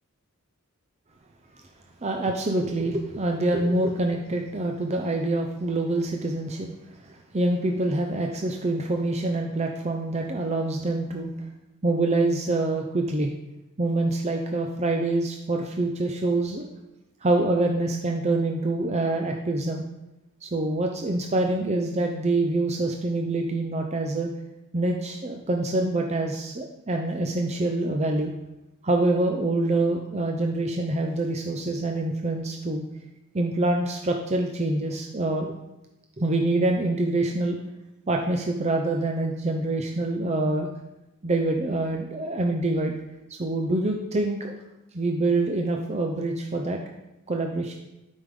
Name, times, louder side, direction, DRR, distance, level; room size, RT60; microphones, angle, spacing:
voice 1, 2.0-6.7 7.1-11.5 11.8-13.3 13.8-16.7 17.2-19.8 20.4-24.3 24.7-28.3 28.8-32.8 33.3-35.5 36.2-37.6 38.1-40.7 41.2-43.0 43.3-44.5 44.9-46.8 47.3-47.7, right 2 dB, 30° right, 2 dB, 0.6 m, -25 dB
12.5 x 5.3 x 3.7 m, 0.96 s
head